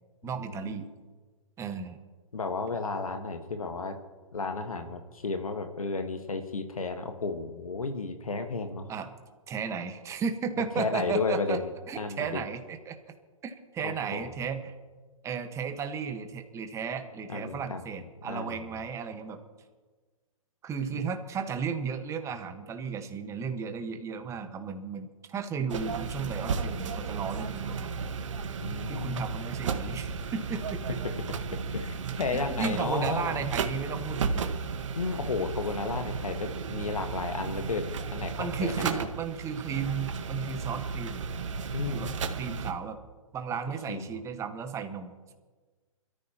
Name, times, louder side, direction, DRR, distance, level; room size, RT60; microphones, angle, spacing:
voice 1, 0.2-0.9 1.6-2.0 8.9-9.1 9.5-11.6 11.9-13.0 13.4-14.7 15.2-19.4 20.6-28.1 28.9-31.0 32.5-34.5 38.4-41.2 41.9-42.1 42.4-43.0 43.3-45.3, right 6 dB, 15° right, 7 dB, 1.4 m, -34 dB
voice 2, 2.3-4.0 4.3-8.9 10.8-11.7 12.0-12.4 13.8-14.3 17.3-17.8 18.3-18.6 20.9-21.1 28.6-29.3 31.0-31.1 31.7-33.4 34.9-39.1 41.7-42.2 43.9-44.2, left 4 dB, 80° left, 6 dB, 1.5 m, -33 dB
sound 1, 25.7-42.7, right 5 dB, 60° right, 1.4 m, -34 dB
26.5 x 13.5 x 3.0 m, 1.4 s
figure-of-eight pair, 125°, 18 cm